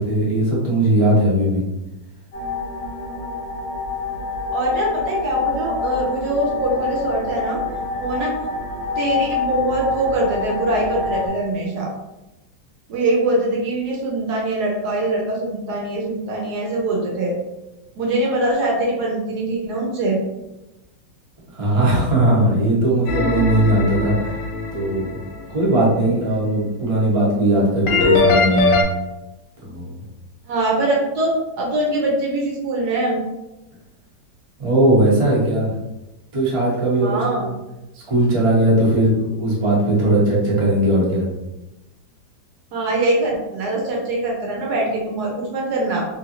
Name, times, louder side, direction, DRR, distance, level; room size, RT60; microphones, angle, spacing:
voice 1, 0.0-1.6 21.5-24.4 24.7-25.1 25.5-28.8 29.6-29.9 34.6-35.7 36.3-37.5 37.9-41.2, right 1 dB, 45° right, -5 dB, 0.4 m, -18 dB
sound 1, 2.3-11.3, left 4 dB, 50° left, 1.1 m, -26 dB
voice 2, 4.5-7.6 8.0-8.3 9.0-11.9 12.9-17.3 18.0-20.2 30.5-31.3 31.6-33.2 37.0-37.5 42.7-46.1, right 2 dB, 70° right, -1 dB, 1.1 m, -22 dB
sound 2, 23.1-25.2 27.9-28.8, left 3 dB, 70° left, 1.2 m, -20 dB
3.0 x 2.5 x 2.8 m, 1.0 s
omnidirectional pair, 2.0 m